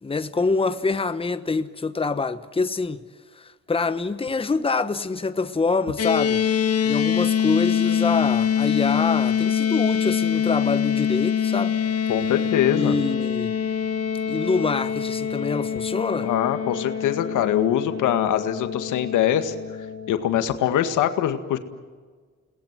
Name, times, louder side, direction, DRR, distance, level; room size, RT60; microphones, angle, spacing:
voice 1, 0.0-3.0 3.4-6.4 6.8-11.8 12.7-13.6 14.3-16.3, left 4 dB, 20° left, 1.2 m, -25 dB
sound 1, 6.0-20.4, left 8 dB, 50° left, 2.2 m, -24 dB
voice 2, 12.1-13.0 16.2-19.5 20.1-21.6, left 10 dB, 85° left, 1.9 m, -23 dB
30.0 x 20.0 x 7.6 m
cardioid pair, 90°, 30 cm